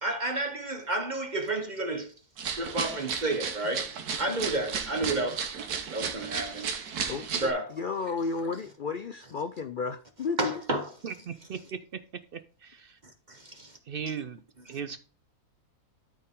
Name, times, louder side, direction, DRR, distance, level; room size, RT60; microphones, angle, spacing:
voice 1, 0.0-2.1 2.5-3.9 4.2-5.4 5.9-6.7 7.4-7.8 10.4-10.9 13.3-13.8, right 2 dB, 35° right, 1.1 m, -31 dB
sound 1, 2.4-7.5, right 6 dB, 90° right, 1.6 m, -34 dB
voice 2, 7.1-10.5, left 4 dB, 80° left, 0.4 m, -33 dB
voice 3, 11.0-12.0 12.3-13.0 13.9-15.0, right 6 dB, 60° right, 0.6 m, -38 dB
13.0 x 4.5 x 3.7 m
omnidirectional pair, 1.6 m